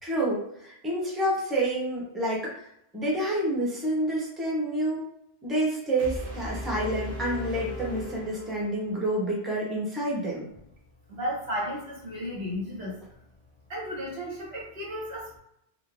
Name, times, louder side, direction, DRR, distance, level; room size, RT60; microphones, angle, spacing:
voice 1, 0.0-2.5 2.9-5.1 5.4-10.4, right 1 dB, ahead, -4 dB, 0.8 m, -28 dB
sound 1, 6.0-9.0, equal, 45° right, 1.7 m, -37 dB
voice 2, 11.1-12.9 13.7-15.4, equal, 65° right, -4 dB, 1.5 m, -34 dB
3.9 x 2.1 x 3.6 m, 0.78 s
omnidirectional pair, 1.1 m